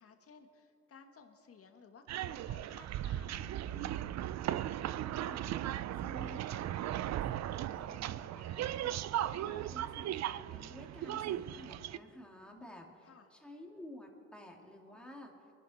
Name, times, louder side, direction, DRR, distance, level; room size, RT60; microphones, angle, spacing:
voice 1, 0.0-4.0 9.4-9.6 12.5-13.3 14.6-15.0, left 5 dB, 50° left, 5 dB, 1.8 m, -59 dB
sound 1, 2.1-12.0, right 12 dB, 60° right, 0.5 m, -37 dB
voice 2, 5.2-5.6 6.0-15.3, equal, 5° left, 1 dB, 2.4 m, -52 dB
23.5 x 11.5 x 4.2 m, 2.7 s
cardioid pair, 90°, 30 cm